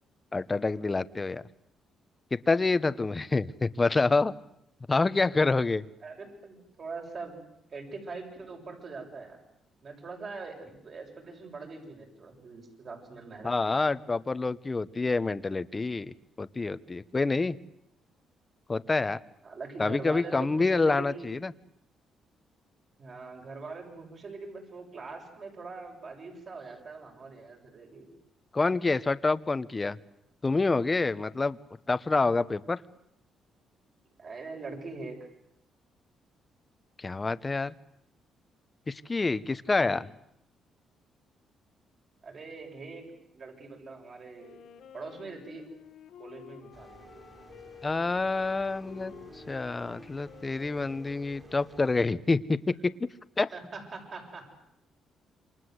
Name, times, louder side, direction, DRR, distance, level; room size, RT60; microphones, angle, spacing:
voice 1, 0.3-1.4 2.3-4.3 4.9-5.8 13.4-17.6 18.7-19.2 19.8-21.5 28.5-30.0 30.4-31.6 31.9-32.8 37.0-37.7 38.9-40.1 47.8-52.9 53.4-53.5, left 3 dB, 25° left, 14 dB, 1.1 m, -27 dB
voice 2, 6.0-7.4 7.7-9.4 9.8-13.5 19.4-21.3 23.0-28.1 34.2-35.2 39.7-40.0 42.2-43.0 43.3-44.6 44.9-45.6 46.2-47.1 48.8-48.9 53.5-54.5, right 3 dB, 45° right, 2 dB, 7.7 m, -42 dB
Wind instrument woodwind instrument, 44.3-52.0, left 8 dB, 80° left, 1.9 m, -52 dB
sound 1, 46.7-52.0, right 2 dB, 30° right, 4.4 m, -53 dB
28.0 x 25.5 x 8.1 m, 0.79 s
cardioid pair, 90°, 0 cm